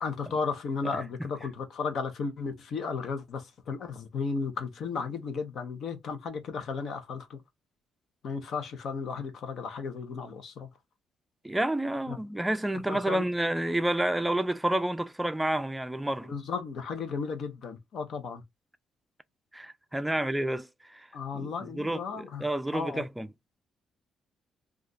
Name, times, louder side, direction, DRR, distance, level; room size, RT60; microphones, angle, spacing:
voice 1, 0.0-7.4 8.2-10.7 12.1-12.2 12.9-13.3 16.3-18.4 21.1-22.4 22.7-23.0, left 5 dB, 65° left, 0.8 m, -34 dB
voice 2, 0.8-1.3 11.4-16.3 19.5-21.1 21.3-23.3, right 1 dB, 10° right, 0.4 m, -30 dB
2.4 x 2.4 x 3.9 m
cardioid pair, 90°, 0 cm